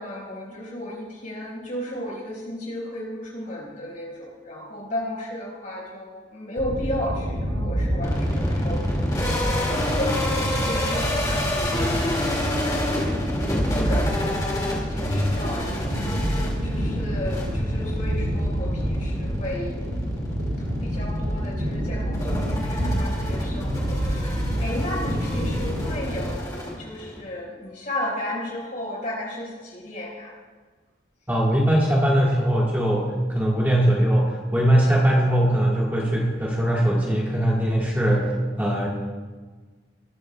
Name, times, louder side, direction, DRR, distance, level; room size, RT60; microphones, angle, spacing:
voice 1, 0.0-19.8 20.8-30.3, left 1 dB, 40° left, -3 dB, 4.4 m, -34 dB
sound 1, 6.6-26.3, equal, 85° right, 4.0 m, -27 dB
sound 2, 8.0-27.2, left 1 dB, 20° left, 2.0 m, -30 dB
voice 2, 31.3-38.9, right 1 dB, 10° right, -4 dB, 1.4 m, -21 dB
19.5 x 12.5 x 2.2 m, 1.4 s
head